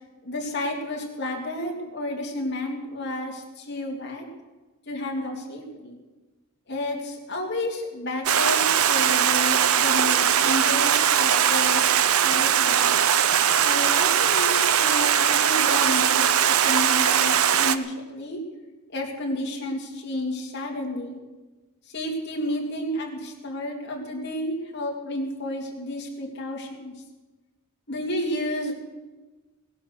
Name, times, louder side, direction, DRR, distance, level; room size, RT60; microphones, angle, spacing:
voice 1, 0.2-4.3 4.9-6.0 6.7-11.8 12.2-13.0 13.6-18.4 18.9-21.2 21.9-26.9 27.9-28.7, left 1 dB, 55° left, 0 dB, 3.2 m, -31 dB
Stream, 8.3-17.8, right 9 dB, 90° right, 0.7 m, -20 dB
18.5 x 11.0 x 6.6 m, 1.2 s
head